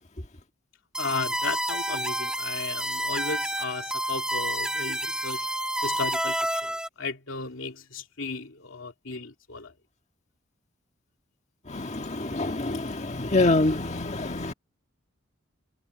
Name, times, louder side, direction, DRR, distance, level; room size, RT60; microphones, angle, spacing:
sound 1, 0.9-6.9, right 1 dB, 5° right, 1.3 m, -29 dB
voice 1, 1.0-5.5 5.8-6.4 6.6-9.7, left 4 dB, 80° left, 2.8 m, -35 dB
voice 2, 11.7-14.5, left 2 dB, 35° left, 1.7 m, -26 dB
head